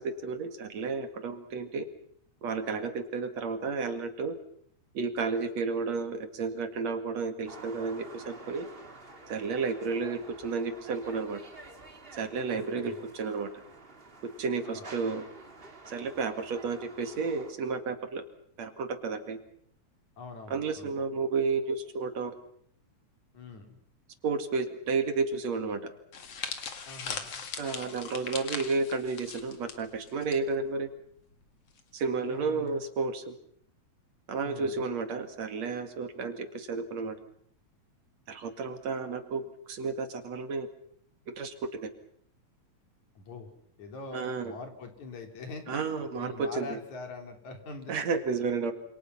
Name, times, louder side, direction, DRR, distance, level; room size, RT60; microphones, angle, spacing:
voice 1, 0.0-1.9 2.4-4.3 4.9-8.7 9.3-11.4 12.1-13.5 14.4-15.2 15.9-18.2 18.6-19.4 20.5-22.4 24.2-25.9 27.6-30.9 31.9-33.4 34.3-37.2 38.3-40.7 41.3-41.9 44.1-44.5 45.7-46.8 47.9-48.7, right 4 dB, 65° right, 7 dB, 3.3 m, -32 dB
sound 1, 7.5-17.5, right 3 dB, 20° right, 2.0 m, -50 dB
voice 2, 12.5-13.1 14.6-14.9 20.2-21.1 23.3-23.8 26.9-27.4 32.2-32.7 34.4-34.7 43.2-43.5 43.8-48.0, left 3 dB, 75° left, 4 dB, 4.8 m, -44 dB
sound 2, 26.1-30.4 30.7-30.9 31.8-32.1, left 6 dB, 55° left, 3.0 m, -39 dB
27.5 x 27.5 x 5.7 m, 0.65 s
omnidirectional pair, 3.3 m